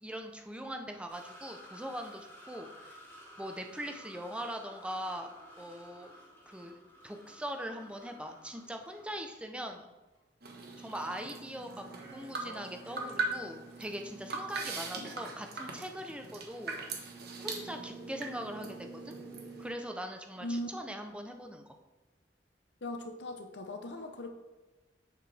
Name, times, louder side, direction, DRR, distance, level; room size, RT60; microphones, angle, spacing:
voice 1, 0.0-3.0 3.4-6.1 6.5-6.8 7.0-9.9 10.8-16.8 17.4-19.2 19.6-21.8, equal, 5° right, 4 dB, 0.8 m, -41 dB
sound 1, 1.1-9.8 10.2-10.3 12.0-12.1, equal, 15° left, 2.1 m, -54 dB
sound 2, 10.4-19.7, right 3 dB, 60° right, 1.4 m, -41 dB
voice 2, 22.8-24.3, left 1 dB, 75° left, 5 dB, 0.9 m, -39 dB
8.4 x 7.5 x 3.4 m, 1.2 s
head